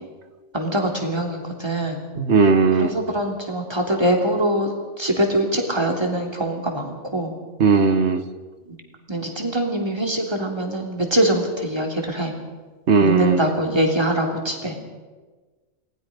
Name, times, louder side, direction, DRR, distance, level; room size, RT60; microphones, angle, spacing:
voice 1, 0.5-2.0 2.8-4.7 5.0-7.3 8.7-8.8 9.1-12.3 13.0-14.8, right 1 dB, 20° right, 1 dB, 3.1 m, -23 dB
voice 2, 2.2-2.9 7.6-8.2 12.9-13.4, right 4 dB, 60° right, 10 dB, 1.5 m, -17 dB
28.0 x 19.5 x 5.2 m, 1.3 s
omnidirectional pair, 1.3 m